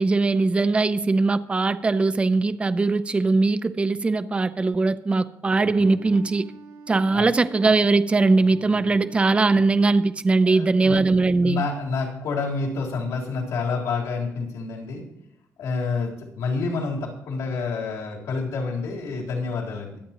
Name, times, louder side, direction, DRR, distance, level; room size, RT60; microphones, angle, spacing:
voice 1, 0.0-6.4 6.9-11.6, right 3 dB, 20° right, 13 dB, 0.5 m, -20 dB
Wind instrument woodwind instrument, 5.8-10.1, right 4 dB, 85° right, 3.2 m, -47 dB
voice 2, 10.4-11.0 11.4-15.1 15.6-20.0, left 4 dB, 80° left, -3 dB, 3.6 m, -28 dB
23.5 x 8.6 x 3.0 m, 0.83 s
cardioid pair, 130°, 6 cm